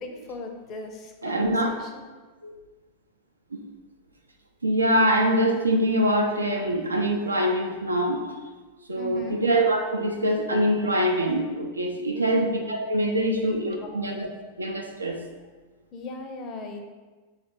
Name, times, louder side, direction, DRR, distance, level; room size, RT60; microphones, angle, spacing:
voice 1, 0.0-2.1 9.0-9.4 12.1-12.4 13.1-13.5 13.8-14.2 15.9-16.8, left 3 dB, 35° left, 4 dB, 0.5 m, -38 dB
voice 2, 1.2-1.7 2.4-2.5 3.5-3.6 4.6-8.5 8.9-14.3 14.6-15.2, right 1 dB, 80° right, 2 dB, 0.5 m, -24 dB
4.2 x 2.4 x 4.6 m, 1.3 s
figure-of-eight pair, 90°, 0 cm